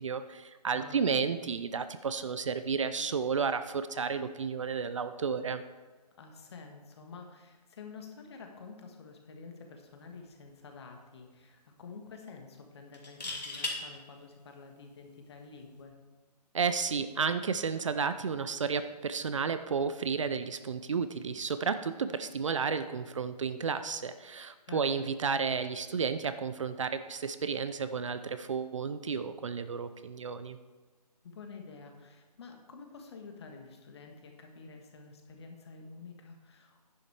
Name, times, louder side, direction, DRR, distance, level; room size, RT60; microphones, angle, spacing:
voice 1, 0.0-5.6 16.5-30.6, right 5 dB, 50° right, 11 dB, 0.5 m, -32 dB
voice 2, 0.7-1.1 6.2-16.0 24.7-24.8 31.2-36.8, left 4 dB, 40° left, 4 dB, 1.6 m, -49 dB
sound 1, 10.1-10.3 10.7-10.8 12.9-13.8 15.6-15.8, left 3 dB, 80° left, 2.5 m, -36 dB
10.5 x 7.2 x 4.8 m, 1.3 s
figure-of-eight pair, 150°, 21 cm